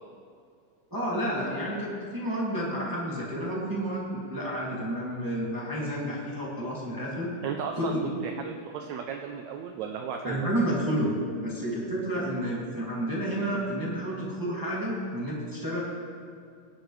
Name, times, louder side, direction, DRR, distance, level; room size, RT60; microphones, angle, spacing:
voice 1, 0.9-7.3 7.7-8.1 10.2-11.1 11.4-15.8, equal, 5° right, -6 dB, 1.8 m, -30 dB
voice 2, 7.4-8.0 8.2-10.5, right 7 dB, 80° right, 4 dB, 1.7 m, -35 dB
18.0 x 10.5 x 3.3 m, 2.3 s
omnidirectional pair, 3.8 m